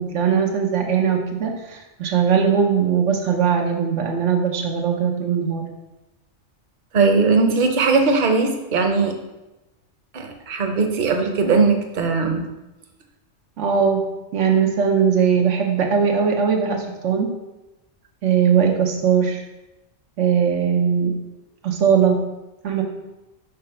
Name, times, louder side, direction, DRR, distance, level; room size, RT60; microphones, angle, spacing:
voice 1, 0.0-5.6 13.6-14.0 14.3-17.3 18.2-19.4 20.2-21.1 21.6-22.2 22.6-22.8, right 7 dB, 85° right, 2 dB, 1.1 m, -20 dB
voice 2, 6.9-9.1 10.1-12.5, right 4 dB, 45° right, 5 dB, 0.8 m, -19 dB
5.3 x 4.8 x 5.6 m, 1.0 s
omnidirectional pair, 1.2 m